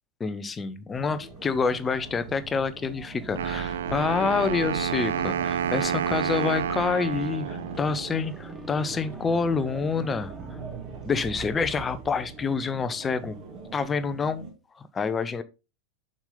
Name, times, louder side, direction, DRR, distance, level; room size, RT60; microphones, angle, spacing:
voice 1, 0.2-10.3 11.0-13.4 13.7-14.5 14.8-15.4, left 5 dB, 20° left, 0.7 m, -27 dB
sound 1, 0.9-14.5, right 2 dB, 35° right, 2.4 m, -41 dB
sound 2, 3.2-12.9, right 5 dB, 15° right, 0.8 m, -44 dB
Wind instrument woodwind instrument, 3.4-8.3, right 9 dB, 60° right, 0.3 m, -30 dB
7.1 x 5.2 x 3.9 m
figure-of-eight pair, 90°, 0 cm